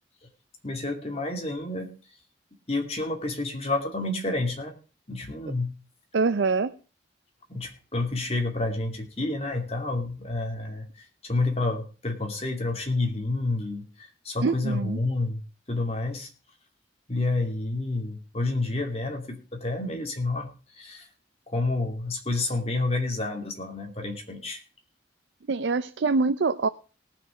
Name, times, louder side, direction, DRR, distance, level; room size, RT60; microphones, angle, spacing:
voice 1, 0.6-1.9 2.7-4.7 5.1-5.7 7.5-15.4 15.7-16.3 17.1-21.1 21.5-24.6, left 2 dB, 35° left, 3 dB, 2.6 m, -29 dB
voice 2, 6.1-6.8 14.4-15.0 25.5-26.7, right 4 dB, 75° right, 11 dB, 0.5 m, -24 dB
19.0 x 6.5 x 4.9 m, 0.34 s
head